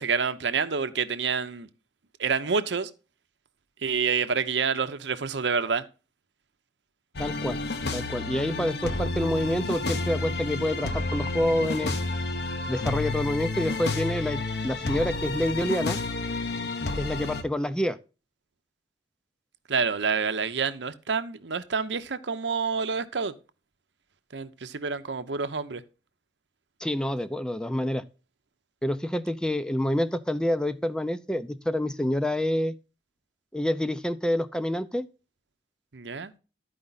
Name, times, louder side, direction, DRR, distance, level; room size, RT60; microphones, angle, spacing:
voice 1, 0.0-1.7 2.2-2.9 3.8-5.8 19.7-23.3 24.3-25.8 35.9-36.3, right 5 dB, 80° right, 0.8 m, -28 dB
sound 1, 7.1-17.4, left 3 dB, 65° left, 0.9 m, -30 dB
voice 2, 7.2-7.6 7.9-11.9 12.7-16.0 17.0-18.0 26.8-28.0 28.8-32.7 33.5-35.0, left 1 dB, 5° left, 0.5 m, -27 dB
12.5 x 5.0 x 4.0 m
head